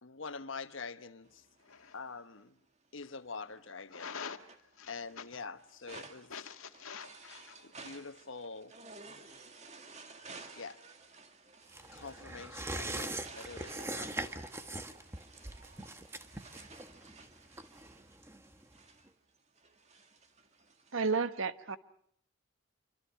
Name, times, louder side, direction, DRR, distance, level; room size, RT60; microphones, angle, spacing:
voice 1, 0.0-1.4 1.9-2.6 2.9-4.2 4.9-6.3 7.8-8.7 10.6-10.8 11.9-14.4, left 4 dB, 65° left, 1.2 m, -45 dB
sound 1, 1.2-2.4 3.0-20.9, right 3 dB, 30° right, 2.0 m, -55 dB
voice 2, 1.6-2.0 3.9-4.5 4.8-4.9 5.2-5.3 6.3-7.7, left 6 dB, 85° left, 1.8 m, -45 dB
sound 2, 11.7-18.8 19.1-19.2, right 2 dB, 10° right, 1.2 m, -42 dB
voice 3, 20.9-21.8, right 4 dB, 75° right, 1.2 m, -31 dB
26.0 x 25.0 x 5.7 m
head